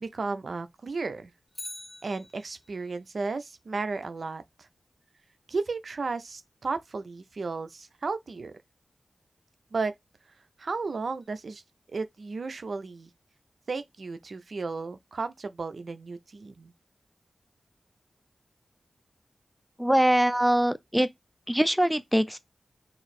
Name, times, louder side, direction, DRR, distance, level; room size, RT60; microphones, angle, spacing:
voice 1, 0.0-1.3 2.0-4.4 5.5-8.5 9.7-9.9 10.6-11.6 11.9-13.1 13.7-16.7, right 4 dB, 70° right, 0.4 m, -34 dB
Bicycle, 1.5-2.9 11.2-11.3, left 1 dB, 25° left, 1.5 m, -44 dB
voice 2, 19.8-21.1 21.5-22.4, equal, ahead, 0.4 m, -23 dB
3.0 x 2.6 x 4.1 m
cardioid pair, 55°, 0 cm